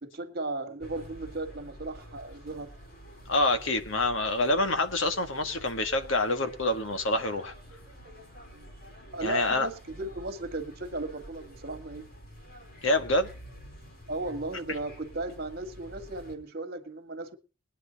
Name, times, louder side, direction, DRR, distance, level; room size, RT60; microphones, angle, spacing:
voice 1, 0.0-2.7 8.5-8.7 9.1-12.1 14.1-17.4, right 2 dB, 50° right, 2.0 m, -36 dB
sound 1, 0.8-16.4, right 1 dB, 50° left, 5.7 m, -48 dB
voice 2, 3.3-7.5 9.2-9.7 12.8-13.3, left 2 dB, 70° left, 1.8 m, -26 dB
21.0 x 9.7 x 4.1 m
head